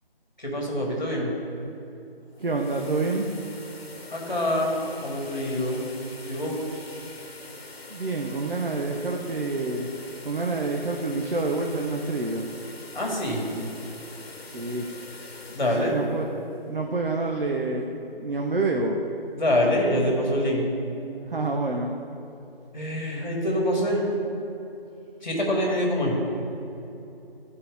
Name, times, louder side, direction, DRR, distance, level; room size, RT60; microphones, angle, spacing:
voice 1, 0.4-1.3 4.1-5.8 6.3-6.6 12.9-13.4 15.5-16.0 19.3-20.7 22.7-24.1 25.2-26.2, left 1 dB, 50° left, -2 dB, 1.7 m, -25 dB
sound 1, 2.2-17.1, left 2 dB, 75° left, 1.1 m, -44 dB
voice 2, 2.4-3.3 7.9-9.9 10.2-12.5 14.5-14.9 15.6-16.4 16.7-17.9 18.2-19.0 21.3-21.9, right 3 dB, 60° right, 1 dB, 0.7 m, -27 dB
11.5 x 4.3 x 3.5 m, 2.9 s
figure-of-eight pair, 175°, 30 cm